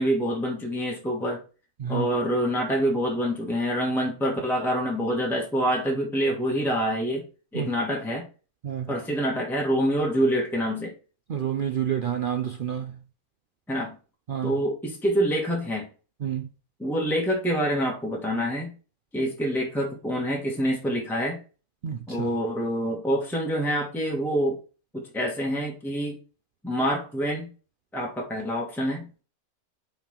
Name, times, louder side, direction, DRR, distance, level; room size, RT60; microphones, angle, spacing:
voice 1, 0.0-1.4 1.9-7.2 7.5-8.3 8.9-10.9 13.7-13.9 14.4-15.9 16.8-18.7 19.1-21.4 22.1-24.6 24.9-26.2 26.6-27.5 27.9-29.1, equal, ahead, 1.5 m, -26 dB
voice 2, 8.6-9.0 11.3-13.0 14.3-14.6 16.2-16.5 21.8-22.3, right 9 dB, 75° right, 0.4 m, -29 dB
5.7 x 4.2 x 5.7 m
omnidirectional pair, 1.6 m